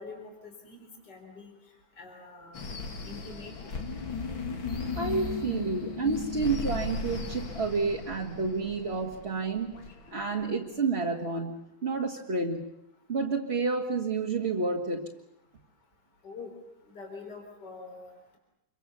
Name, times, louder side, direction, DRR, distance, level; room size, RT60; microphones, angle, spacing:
voice 1, 0.0-1.5 2.0-2.6 3.0-3.7 16.2-16.5 16.9-18.4, left 4 dB, 55° left, 3 dB, 4.7 m, -45 dB
sound 1, 2.5-10.5, left 4 dB, 75° left, 3.3 m, -37 dB
voice 2, 4.9-9.7 10.1-12.7 13.1-15.0, right 4 dB, 30° right, 1 dB, 2.0 m, -30 dB
28.0 x 24.5 x 6.9 m, 0.81 s
omnidirectional pair, 2.2 m